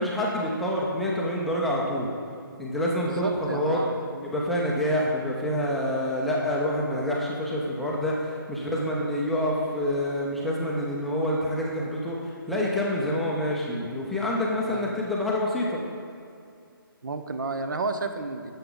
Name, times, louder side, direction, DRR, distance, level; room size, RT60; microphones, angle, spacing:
voice 1, 0.0-2.1 2.6-3.8 4.2-15.8, left 1 dB, ahead, -5 dB, 0.5 m, -27 dB
voice 2, 3.0-4.3 8.6-8.8 14.7-14.9 17.0-18.5, right 3 dB, 60° right, 8 dB, 0.7 m, -32 dB
11.0 x 6.9 x 3.9 m, 2.4 s
figure-of-eight pair, 155°, 12 cm